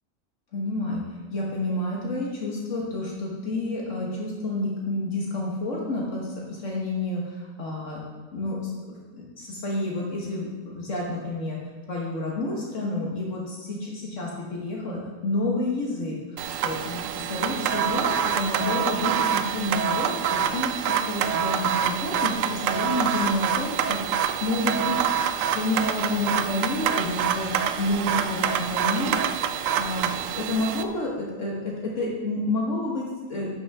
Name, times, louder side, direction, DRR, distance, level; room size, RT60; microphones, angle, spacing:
voice 1, 0.5-1.0 1.3-8.0 8.3-8.6 9.1-11.6 11.9-16.4 16.6-25.0 25.5-29.2 29.8-33.5, left 2 dB, 75° left, -3 dB, 1.7 m, -29 dB
sound 1, 16.4-30.8, right 8 dB, 85° right, 0.9 m, -26 dB
11.5 x 6.3 x 3.6 m, 1.3 s
omnidirectional pair, 1.3 m